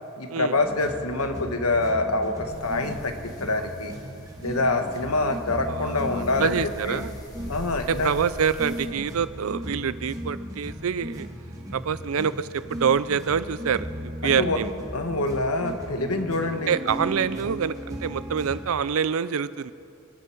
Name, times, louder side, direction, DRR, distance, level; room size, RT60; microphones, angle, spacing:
voice 1, 0.2-3.9 4.4-7.0 7.5-8.1 14.2-14.6 14.9-16.7, left 2 dB, 90° left, 6 dB, 1.3 m, -26 dB
sound 1, 0.5-18.6, equal, 15° right, 1.8 m, -37 dB
sound 2, 2.5-8.8, equal, 15° left, 1.5 m, -45 dB
voice 2, 5.7-7.1 7.8-11.3 11.7-14.7 16.7-19.7, right 7 dB, 75° right, 16 dB, 0.5 m, -26 dB
26.5 x 12.0 x 4.5 m, 2.7 s
head